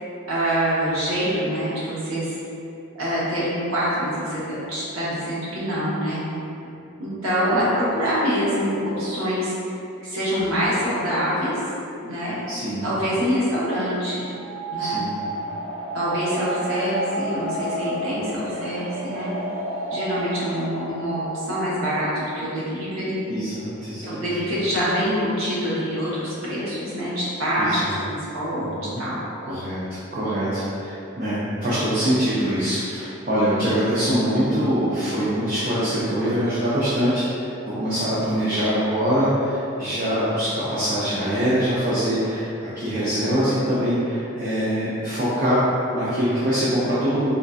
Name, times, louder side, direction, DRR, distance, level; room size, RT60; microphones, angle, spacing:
voice 1, 0.2-2.3 3.0-6.2 7.0-9.5 10.0-11.6 12.0-12.4 12.8-14.3 14.7-15.0 15.9-19.3 19.9-23.2 24.0-27.8 28.1-28.7 29.0-29.2, equal, 80° right, -8 dB, 0.9 m, -25 dB
voice 2, 12.5-12.9 14.8-15.2 23.3-24.2 27.6-28.0 28.6-29.0 29.4-42.5 42.8-47.3, equal, 40° right, -10 dB, 0.5 m, -23 dB
sound 1, 14.3-21.9, right 1 dB, 60° right, 1.0 m, -31 dB
3.5 x 2.6 x 2.3 m, 2.8 s
head